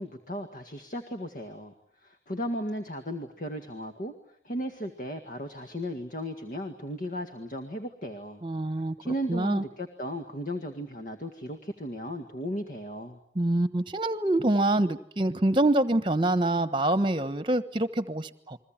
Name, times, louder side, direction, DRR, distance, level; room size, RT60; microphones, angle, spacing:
voice 1, 0.0-1.7 2.0-4.1 4.4-8.4 9.0-13.2, equal, 45° left, 7 dB, 1.9 m, -35 dB
voice 2, 8.4-8.9 9.3-9.6 13.3-18.6, right 1 dB, 30° right, 13 dB, 1.2 m, -25 dB
30.0 x 22.0 x 8.9 m, 0.65 s
head